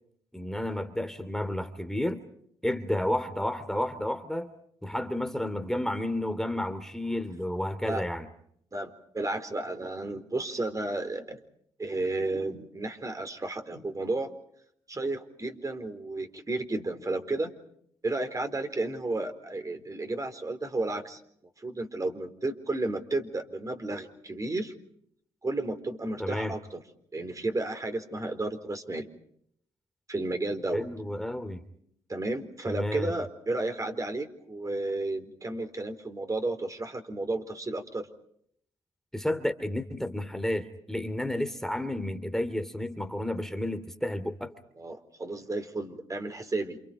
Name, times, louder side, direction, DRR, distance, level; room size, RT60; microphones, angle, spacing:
voice 1, 0.3-2.2 2.6-4.5 4.8-8.3 26.2-26.5 30.7-31.6 32.7-33.1 39.1-44.5, left 1 dB, 5° left, 9 dB, 2.6 m, -31 dB
voice 2, 8.7-11.4 11.8-14.3 14.9-17.5 18.0-21.2 21.6-24.7 25.4-26.8 27.1-29.1 30.1-30.9 32.1-38.1 44.8-46.8, right 2 dB, 30° right, 7 dB, 4.2 m, -32 dB
29.0 x 28.0 x 5.2 m, 0.68 s
hypercardioid pair, 50°, 11 cm